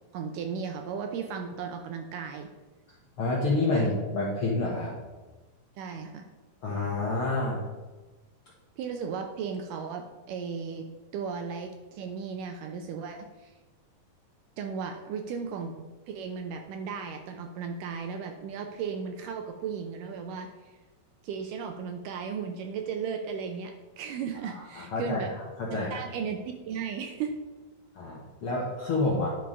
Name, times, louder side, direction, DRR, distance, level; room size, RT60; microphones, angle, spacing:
voice 1, 0.1-2.5 3.7-4.0 5.8-6.3 8.8-10.9 11.1-13.5 14.6-20.8 21.2-25.3 25.9-27.4, right 6 dB, 75° right, 5 dB, 2.0 m, -35 dB
voice 2, 3.2-4.9 6.6-7.6 24.4-25.3 25.6-26.0 27.9-29.3, left 2 dB, 65° left, -4 dB, 1.4 m, -28 dB
10.5 x 4.8 x 5.2 m, 1.2 s
omnidirectional pair, 4.2 m